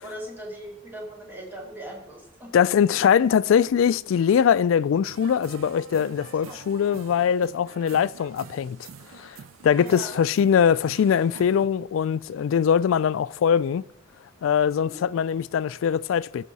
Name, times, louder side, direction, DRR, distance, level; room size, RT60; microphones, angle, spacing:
voice 1, 0.0-2.5 6.4-6.6 9.8-10.2 14.7-15.0, right 1 dB, 10° right, 2.5 m, -39 dB
voice 2, 2.5-8.8 9.1-9.4 9.6-13.8 14.4-16.4, left 8 dB, 85° left, 0.3 m, -22 dB
sound 1, 5.0-11.7, right 7 dB, 80° right, 0.4 m, -45 dB
13.5 x 5.4 x 4.1 m
head